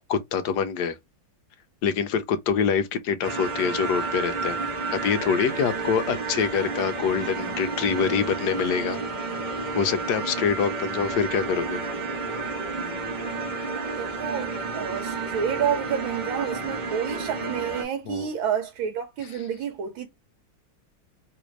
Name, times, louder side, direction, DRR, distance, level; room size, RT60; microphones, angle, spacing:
voice 1, 0.1-1.0 1.8-4.6 4.9-9.0 9.8-11.8 18.1-18.3, left 6 dB, 75° left, 1.0 m, -25 dB
sound 1, 3.2-17.8, right 4 dB, 50° right, 0.5 m, -31 dB
voice 2, 13.8-20.1, right 8 dB, 80° right, 1.5 m, -29 dB
3.4 x 2.5 x 3.0 m
omnidirectional pair, 2.1 m